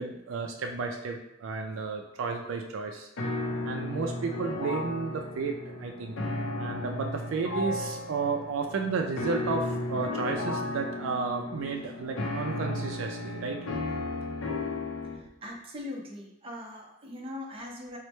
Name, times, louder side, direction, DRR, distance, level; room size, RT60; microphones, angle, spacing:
voice 1, 0.0-3.1 3.6-6.2 6.6-13.6, right 4 dB, 75° right, 3 dB, 0.4 m, -32 dB
sound 1, 3.2-15.2, left 2 dB, 75° left, 0.5 m, -34 dB
voice 2, 15.1-18.0, left 1 dB, 30° right, -1 dB, 0.6 m, -41 dB
3.2 x 2.1 x 4.1 m, 0.84 s
head